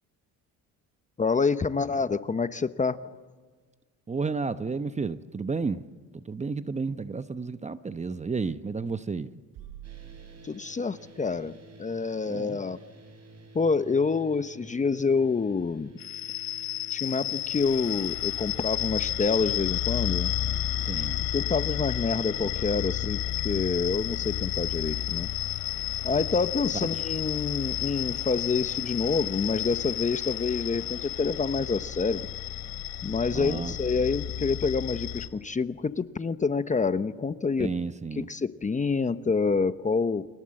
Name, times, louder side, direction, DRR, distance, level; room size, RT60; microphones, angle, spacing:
voice 1, 1.2-3.0 10.4-12.8 13.5-15.9 16.9-20.3 21.3-25.3 26.0-32.2 33.0-37.7 38.2-40.3, left 4 dB, 20° left, 0.8 m, -27 dB
voice 2, 4.1-5.8 6.1-9.3 12.3-12.6 20.8-21.2 26.8-27.0 33.3-33.7 37.6-38.3, right 4 dB, 20° right, 0.9 m, -32 dB
sound 1, 9.5-11.4, right 11 dB, 70° right, 5.2 m, -47 dB
sound 2, 9.8-21.5, right 2 dB, 45° right, 6.3 m, -51 dB
sound 3, 16.0-35.3, left 11 dB, 70° left, 2.8 m, -31 dB
29.5 x 24.5 x 7.7 m
cardioid pair, 100°, 35 cm